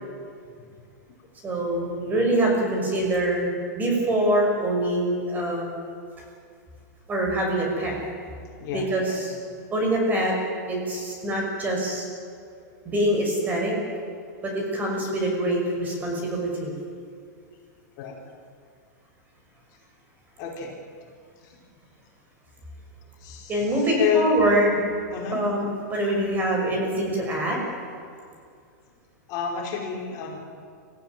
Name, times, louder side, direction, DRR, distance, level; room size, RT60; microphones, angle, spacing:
voice 1, 1.4-3.5 3.8-5.8 7.1-7.9 8.7-9.4 9.7-10.4 10.7-12.1 12.8-13.7 14.4-16.7 23.5-24.8 25.3-27.6, right 1 dB, 20° right, 0 dB, 5.9 m, -24 dB
voice 2, 8.6-9.2 12.6-12.7 18.0-18.2 20.4-20.7 21.4-21.5 23.2-23.7 24.0-24.3 25.1-25.4 29.3-30.4, left 8 dB, 40° left, -1 dB, 5.0 m, -29 dB
25.0 x 15.0 x 9.3 m, 2.3 s
supercardioid pair, 150°, 9 cm